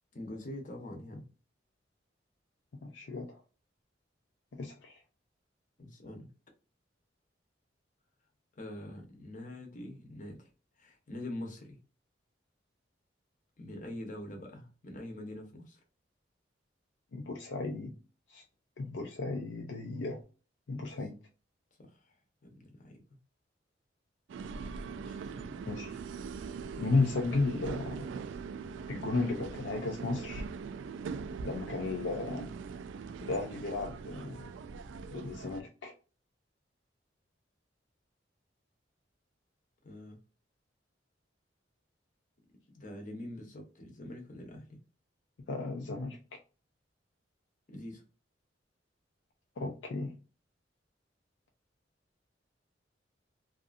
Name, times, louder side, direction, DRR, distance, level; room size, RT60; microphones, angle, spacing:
voice 1, 0.1-1.2 5.8-6.3 8.6-10.5 10.8-11.8 13.6-15.8 21.8-22.1 22.4-23.0 24.9-25.6 39.8-40.2 42.7-44.8 47.7-48.0, left 1 dB, 45° left, 0.8 m, -44 dB
voice 2, 2.8-3.4 4.5-5.0 17.1-17.9 18.3-18.4 18.8-20.2 20.7-21.1 25.7-25.9 26.8-28.1 28.9-30.4 31.4-32.5 33.3-34.5 35.1-35.9 45.5-46.2 49.6-50.1, left 3 dB, 70° left, 0.4 m, -34 dB
sound 1, 24.3-35.6, right 5 dB, 85° right, 0.3 m, -41 dB
2.6 x 2.5 x 2.4 m
head